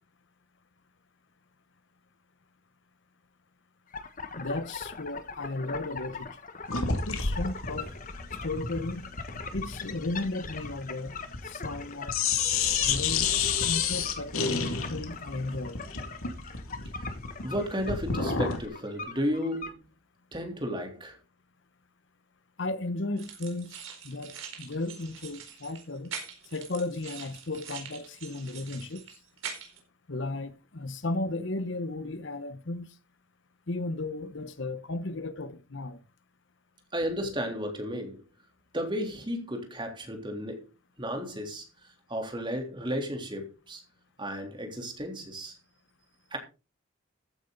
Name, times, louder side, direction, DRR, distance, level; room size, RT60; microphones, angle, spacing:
sound 1, 3.9-19.7, left 4 dB, 40° left, 1.4 m, -42 dB
voice 1, 4.4-6.4 6.9-7.9 8.4-9.1 9.5-11.2 11.4-12.2 12.8-13.3 13.6-15.8 22.6-23.8 24.0-26.1 26.5-29.2 30.1-32.9 33.7-36.0, left 2 dB, 60° left, 1.0 m, -35 dB
sound 2, 6.7-11.8 12.1-18.7, left 6 dB, 85° left, 2.5 m, -30 dB
voice 2, 17.4-19.8 20.3-21.2 36.9-38.2 38.7-40.7 41.0-41.6 42.1-43.8 44.2-45.5 46.3-46.4, equal, 20° right, 3.4 m, -33 dB
sound 3, 23.2-29.8, right 7 dB, 70° right, 4.4 m, -43 dB
15.0 x 9.1 x 4.0 m
head